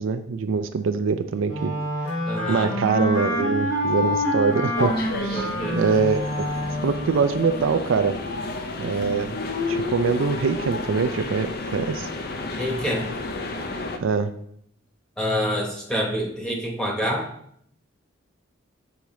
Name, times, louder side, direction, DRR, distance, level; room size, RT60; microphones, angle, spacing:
voice 1, 0.0-1.7 2.5-4.9 5.2-6.5 6.8-8.2 8.8-9.4 9.7-12.1 14.0-14.3, right 5 dB, 75° right, 9 dB, 0.4 m, -24 dB
Wind instrument woodwind instrument, 1.5-7.2, left 1 dB, 85° left, 1.8 m, -27 dB
voice 2, 2.3-2.7 5.3-5.8 12.6-13.1 15.2-17.3, equal, 5° left, -1 dB, 1.1 m, -27 dB
sound 1, 4.8-14.0, left 3 dB, 50° left, 0.5 m, -31 dB
6.9 x 4.8 x 3.1 m, 0.68 s
head